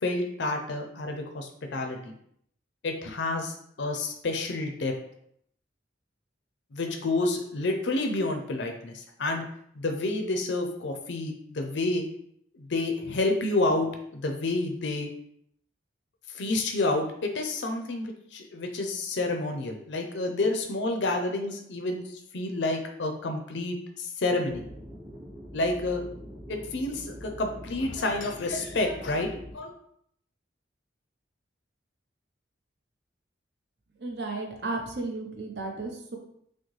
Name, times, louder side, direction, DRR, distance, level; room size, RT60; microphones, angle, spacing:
voice 1, 0.0-2.1 2.8-4.9 6.7-9.4 9.8-12.0 12.5-15.1 16.3-24.7 25.5-26.0 26.5-29.3 29.5-29.7, left 2 dB, 65° left, 4 dB, 0.5 m, -29 dB
sound 1, 24.5-29.5, equal, 40° right, 1.7 m, -43 dB
voice 2, 34.0-36.2, right 2 dB, 60° right, 2 dB, 0.8 m, -34 dB
6.1 x 2.1 x 3.2 m, 0.69 s
head